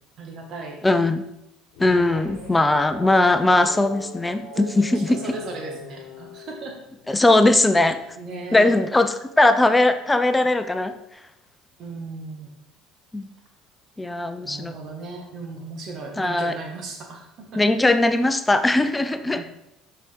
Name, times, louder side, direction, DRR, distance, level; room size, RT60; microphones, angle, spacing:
voice 1, 0.2-0.8 1.8-2.3 4.5-6.8 8.2-8.7 11.8-12.5 14.4-17.6 19.2-19.5, right 3 dB, 55° right, 1 dB, 1.8 m, -36 dB
voice 2, 0.8-1.2 1.8-5.2 7.1-8.0 8.5-10.9 13.1-13.3 14.0-14.7 16.2-16.5 17.5-19.4, left 2 dB, 15° left, 10 dB, 0.6 m, -19 dB
sound 1, 1.7-7.3, left 2 dB, 75° left, 1.1 m, -41 dB
5.9 x 5.0 x 4.5 m, 0.83 s
supercardioid pair, 80°, 0 cm